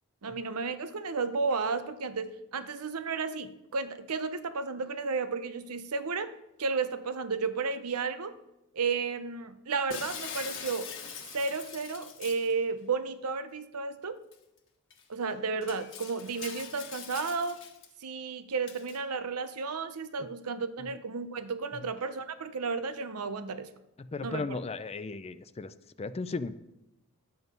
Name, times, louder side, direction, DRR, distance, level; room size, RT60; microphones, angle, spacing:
voice 1, 0.2-6.3 6.6-8.4 8.7-10.9 11.3-14.2 15.1-17.6 18.0-23.7 24.2-24.6, right 4 dB, 85° right, 11 dB, 0.8 m, -33 dB
Shatter, 9.9-12.5 14.3-14.4 14.9-15.0 15.6-17.9 18.7-19.0, left 7 dB, 60° left, 1.3 m, -42 dB
voice 2, 24.0-26.6, left 3 dB, 30° left, 14 dB, 0.4 m, -36 dB
11.0 x 8.0 x 5.3 m, 0.92 s
head